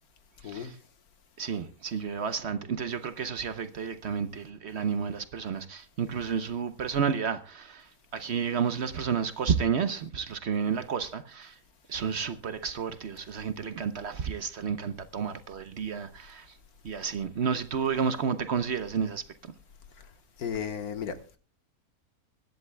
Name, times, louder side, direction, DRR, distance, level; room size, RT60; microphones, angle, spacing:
voice 1, 0.4-0.8 1.4-11.6 11.9-16.5 16.8-19.2, right 6 dB, 55° right, 0.9 m, -31 dB
voice 2, 20.4-21.4, left 7 dB, 80° left, 1.7 m, -34 dB
24.0 x 10.5 x 2.2 m
omnidirectional pair, 1.6 m